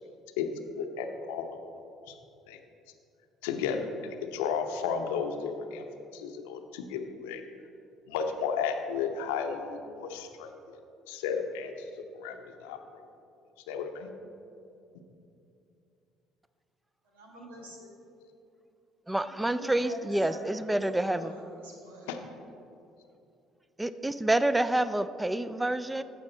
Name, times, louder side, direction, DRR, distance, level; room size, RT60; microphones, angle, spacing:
voice 1, 0.7-1.5 2.1-2.2 2.5-2.6 3.4-5.8 6.1-7.4 8.1-10.5 11.1-12.8 13.7-14.1 22.1-22.2, left 6 dB, 80° left, 5 dB, 0.7 m, -33 dB
voice 2, 17.1-17.9 19.2-19.3 19.6-22.1, equal, 90° right, -2 dB, 1.6 m, -45 dB
voice 3, 19.1-21.3 23.8-26.0, right 1 dB, 10° right, 13 dB, 0.4 m, -28 dB
14.0 x 5.1 x 4.3 m, 2.7 s
hypercardioid pair, 55°, 0 cm